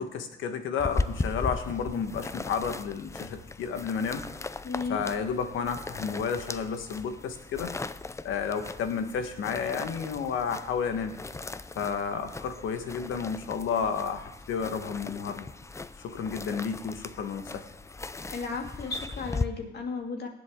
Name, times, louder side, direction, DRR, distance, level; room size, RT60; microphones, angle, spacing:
voice 1, 0.0-4.2 4.9-7.7 8.2-11.1 11.7-15.5 16.0-17.6, left 6 dB, 80° left, 7 dB, 1.5 m, -31 dB
sound 1, 0.8-19.5, left 3 dB, 15° left, 0.4 m, -38 dB
voice 2, 4.6-5.0 18.3-20.3, left 4 dB, 55° left, 2 dB, 2.4 m, -34 dB
18.5 x 7.8 x 3.8 m, 0.91 s
cardioid pair, 90°, 20 cm